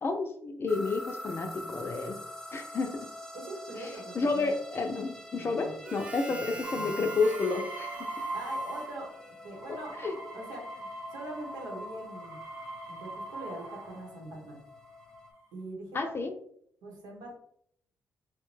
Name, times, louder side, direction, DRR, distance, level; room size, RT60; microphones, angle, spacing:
voice 1, 0.0-2.2 2.5-3.0 3.8-3.9 4.1-8.0 9.7-10.1 15.9-16.3, left 3 dB, 35° left, 5 dB, 0.5 m, -31 dB
sound 1, 0.7-15.3, left 1 dB, ahead, 0.8 m, -47 dB
voice 2, 3.3-4.5 5.3-5.7 6.3-6.9 8.3-9.1 9.4-10.0 10.3-12.4 12.9-14.6 15.5-16.3 16.8-17.3, right 2 dB, 85° right, -1 dB, 1.1 m, -43 dB
Harmonica, 5.8-9.6, right 3 dB, 20° right, 0.4 m, -44 dB
sound 2, 6.6-9.2 9.5-14.1 14.8-15.4, right 2 dB, 50° right, 0.9 m, -41 dB
2.7 x 2.2 x 3.1 m, 0.64 s
cardioid pair, 85°, 7 cm